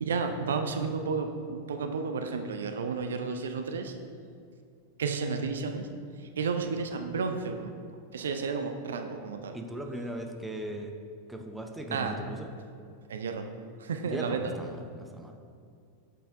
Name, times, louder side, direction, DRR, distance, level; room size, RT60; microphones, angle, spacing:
voice 1, 0.0-3.9 5.0-5.9 6.2-7.7 8.1-9.6 11.9-12.2 13.1-13.5 13.8-14.5, right 5 dB, 65° right, 6 dB, 0.4 m, -32 dB
voice 2, 9.5-10.9 11.3-12.5 14.1-15.4, right 1 dB, 5° right, 3 dB, 0.6 m, -38 dB
6.6 x 5.4 x 3.6 m, 2.3 s
figure-of-eight pair, 90°, 0 cm